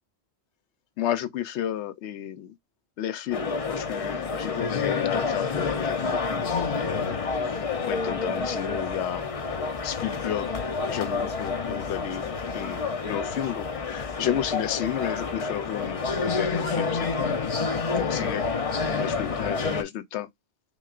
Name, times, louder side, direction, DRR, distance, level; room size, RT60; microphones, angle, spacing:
voice 1, 1.0-2.5 3.0-9.2 9.8-12.3 12.5-17.4 17.9-18.5 18.9-20.3, left 11 dB, 80° left, 0.9 m, -32 dB
sound 1, 3.3-19.8, left 4 dB, 45° left, 0.5 m, -28 dB
6.1 x 2.2 x 2.4 m
omnidirectional pair, 1.2 m